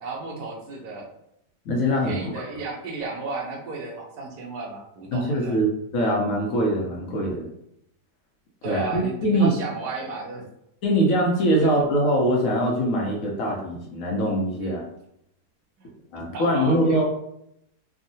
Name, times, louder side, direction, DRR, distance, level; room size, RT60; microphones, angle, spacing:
voice 1, 0.0-1.1 2.0-5.6 8.6-10.5 11.6-11.7 14.6-14.8 15.8-15.9 16.3-17.0, right 3 dB, 75° right, 0 dB, 1.2 m, -34 dB
voice 2, 1.7-2.3 5.1-7.5 8.6-9.5 10.8-14.8 16.1-17.0, equal, 65° left, -2 dB, 0.9 m, -23 dB
3.6 x 2.1 x 2.6 m, 0.78 s
omnidirectional pair, 1.8 m